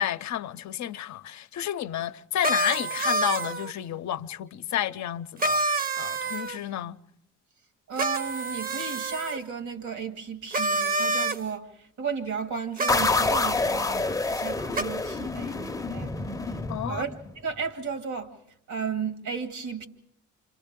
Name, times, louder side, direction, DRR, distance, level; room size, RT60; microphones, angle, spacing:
voice 1, 0.0-7.0 16.7-17.0, left 11 dB, 65° left, 0.7 m, -31 dB
sound 1, 2.4-3.7 5.4-6.6 8.0-9.4 10.5-11.4 12.8-13.5 14.7-14.8, right 2 dB, 30° right, 0.8 m, -28 dB
voice 2, 7.9-16.1 16.5-16.6 16.8-18.4 18.7-19.9, right 6 dB, 70° right, 2.3 m, -34 dB
sound 2, 12.9-17.4, left 3 dB, 10° left, 0.7 m, -27 dB
29.5 x 26.5 x 3.7 m
cardioid pair, 90°, 30 cm